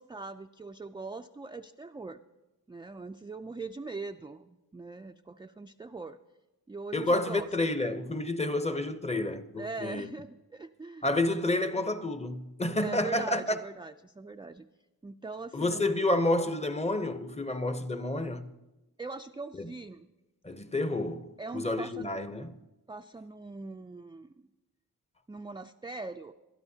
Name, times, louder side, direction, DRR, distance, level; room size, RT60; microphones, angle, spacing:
voice 1, 0.0-2.2 2.7-6.2 6.7-7.5 9.6-11.1 12.8-14.7 15.0-16.0 19.0-20.1 21.4-22.1 22.9-24.5 25.3-26.3, right 3 dB, 15° right, 0.3 m, -41 dB
voice 2, 6.9-10.1 11.0-13.6 15.5-18.5 19.6-19.7 20.4-22.5, left 2 dB, 20° left, 0.7 m, -29 dB
21.0 x 12.5 x 2.7 m
wide cardioid pair, 90°, 36 cm